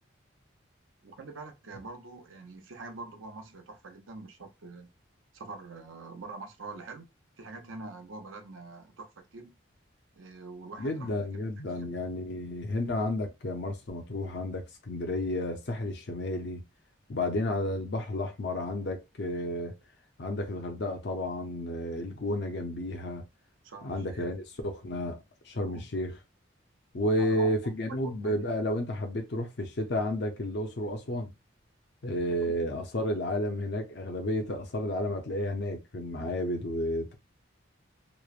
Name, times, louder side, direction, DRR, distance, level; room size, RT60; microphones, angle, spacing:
voice 1, 1.0-4.9 5.3-7.1 7.4-9.5 10.1-11.2 11.7-12.0 23.6-24.3 25.6-25.8 27.2-27.5 28.2-28.4, right 3 dB, 80° right, 0.7 m, -44 dB
voice 2, 10.8-16.6 17.1-19.8 20.2-23.2 23.8-25.2 25.4-26.2 26.9-31.3 32.0-37.2, left 1 dB, 55° left, 0.5 m, -32 dB
3.0 x 2.0 x 2.4 m
head